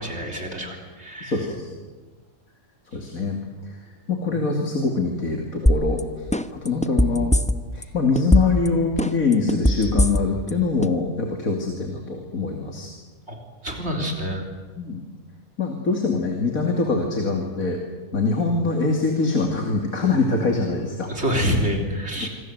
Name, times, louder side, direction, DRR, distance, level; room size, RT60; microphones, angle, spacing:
voice 1, 0.0-1.4 13.3-14.5 21.1-22.3, equal, 50° right, 2 dB, 4.0 m, -27 dB
voice 2, 1.2-1.7 2.9-3.4 4.1-6.0 6.5-7.4 7.7-12.9 14.8-15.0 15.6-17.8 18.1-21.1 22.2-22.3, left 4 dB, 80° left, 2 dB, 3.1 m, -23 dB
sound 1, 5.7-6.0 6.3-7.8 8.2-8.7 9.0-10.5 10.8-10.9, equal, 5° left, 0.7 m, -19 dB
26.0 x 25.0 x 8.0 m, 1.3 s
omnidirectional pair, 1.5 m